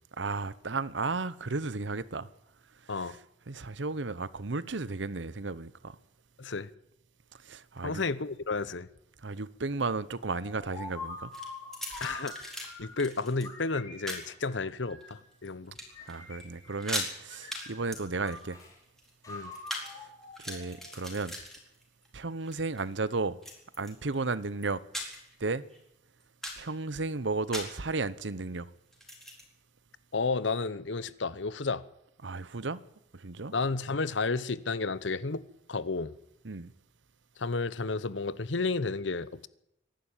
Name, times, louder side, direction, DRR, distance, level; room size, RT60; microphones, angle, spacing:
voice 1, 0.2-2.3 2.9-3.2 3.5-6.0 7.4-8.0 9.2-11.3 16.1-18.6 20.0-20.1 20.4-21.4 22.1-23.4 23.8-24.8 25.4-25.6 26.6-28.7 32.2-32.8 33.1-33.5 36.4-36.7, right 3 dB, 80° right, 0.9 m, -34 dB
voice 2, 6.4-6.7 7.8-8.9 12.0-12.3 12.8-15.7 19.3-19.5 30.1-31.8 33.5-36.1 37.4-39.5, left 3 dB, 80° left, 0.9 m, -32 dB
sound 1, 10.2-13.0 13.4-15.2 15.9-17.0 17.3-18.7 19.2-21.0, left 3 dB, 20° left, 4.8 m, -45 dB
sound 2, 11.3-12.7 13.0-13.5 14.1-14.3 14.9-15.5 15.7-16.1 16.4-16.5 16.7-17.1 17.5-17.7 17.9-19.9 20.2-22.1 22.4-22.8 23.4-24.2 24.6-25.3 25.7-25.8 26.2-26.7 27.5-27.8 28.9-29.4, equal, ahead, 4.3 m, -39 dB
25.5 x 11.5 x 8.9 m
head